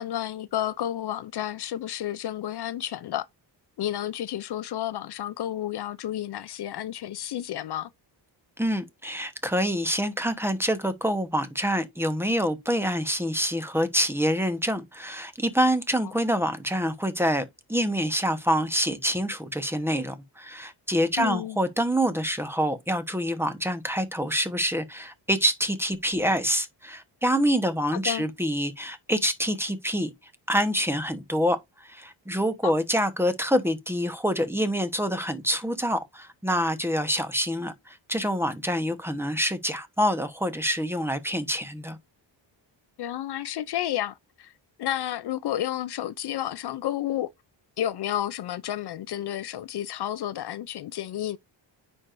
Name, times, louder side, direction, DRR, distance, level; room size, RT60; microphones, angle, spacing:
voice 1, 0.0-3.3 3.8-7.9 21.2-21.6 27.9-28.3 32.6-32.7 43.0-44.5 44.8-47.3 47.8-51.4, left 12 dB, 60° left, 0.5 m, -31 dB
voice 2, 8.6-30.1 30.5-42.0, equal, 5° right, 0.9 m, -26 dB
9.6 x 4.5 x 2.5 m
wide cardioid pair, 140°, 46 cm